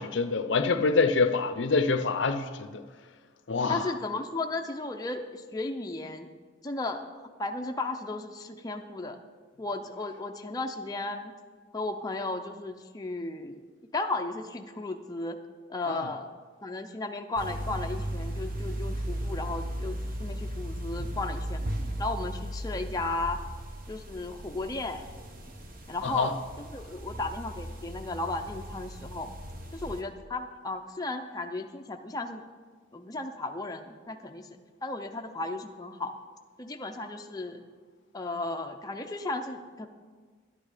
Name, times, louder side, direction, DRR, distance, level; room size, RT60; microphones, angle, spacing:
voice 1, 0.0-2.8 3.5-3.8 15.9-16.1 26.0-26.3, left 4 dB, 65° left, 0.6 m, -26 dB
voice 2, 3.7-6.3 6.6-7.0 7.4-9.2 9.6-11.3 11.7-13.6 13.9-15.4 15.7-16.3 16.6-21.6 22.0-23.4 23.9-25.0 25.9-29.3 29.7-32.4 32.9-34.5 34.8-36.2 36.6-37.6 38.1-39.9, left 2 dB, 20° left, 0.5 m, -34 dB
sound 1, 17.4-30.0, equal, 45° right, 1.1 m, -36 dB
12.0 x 9.4 x 5.0 m
head